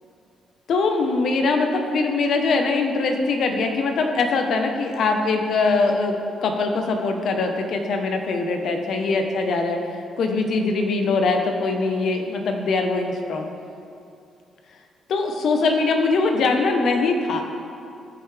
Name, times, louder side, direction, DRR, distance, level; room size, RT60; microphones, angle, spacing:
voice 1, 0.7-6.2 6.4-9.8 10.2-13.5 15.1-17.4, left 3 dB, 65° left, 4 dB, 1.1 m, -22 dB
16.5 x 5.9 x 3.4 m, 2.5 s
cardioid pair, 90°, 0 cm